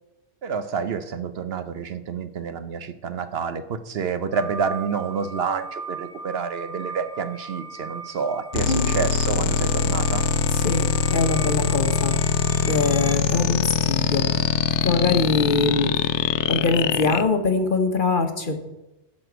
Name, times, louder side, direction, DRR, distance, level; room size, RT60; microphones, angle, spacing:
voice 1, 0.4-10.3, right 6 dB, 65° right, 10 dB, 0.9 m, -28 dB
sound 1, 4.3-13.2, right 3 dB, 15° left, 0.6 m, -38 dB
sound 2, 8.5-17.2, left 7 dB, 80° left, 0.9 m, -23 dB
voice 2, 10.5-12.1 12.6-14.2 14.8-15.9 16.5-18.6, left 3 dB, 50° left, 6 dB, 1.2 m, -23 dB
12.0 x 4.3 x 7.9 m, 0.97 s
omnidirectional pair, 1.2 m